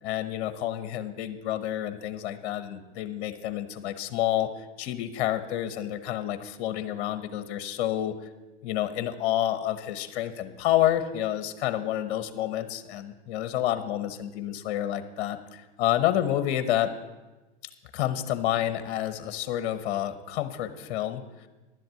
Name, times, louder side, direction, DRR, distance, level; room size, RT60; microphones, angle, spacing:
voice 1, 0.0-8.1 8.6-16.9 17.9-21.5, left 12 dB, 55° left, 12 dB, 1.0 m, -29 dB
11.0 x 7.8 x 7.6 m, 1.2 s
hypercardioid pair, 105°, 32 cm